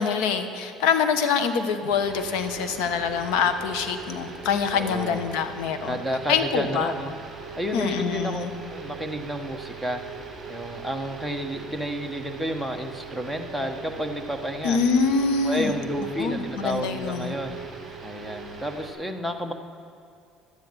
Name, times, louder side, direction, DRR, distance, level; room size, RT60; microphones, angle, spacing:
voice 1, 0.0-6.0 6.3-6.9 7.7-8.5 14.6-15.7 16.2-17.3, left 6 dB, 85° left, 9 dB, 1.1 m, -25 dB
sound 1, 1.9-18.9, right 5 dB, 25° right, 3.3 m, -40 dB
voice 2, 4.7-5.2 5.9-7.1 7.6-10.0 10.5-14.8 15.4-17.6 18.0-19.5, equal, 5° left, 5 dB, 1.1 m, -31 dB
12.0 x 10.0 x 7.7 m, 2.5 s
cardioid pair, 135°, 0 cm